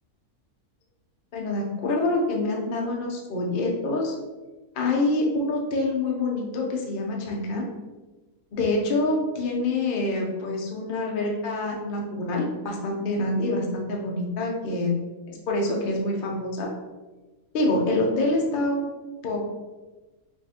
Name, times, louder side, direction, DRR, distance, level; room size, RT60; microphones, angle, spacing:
voice 1, 1.3-4.1 4.7-7.6 8.5-14.9 15.3-16.7 17.5-18.9 19.2-19.5, left 2 dB, 55° left, -1 dB, 0.6 m, -26 dB
4.5 x 2.4 x 2.8 m, 1.2 s
omnidirectional pair, 1.5 m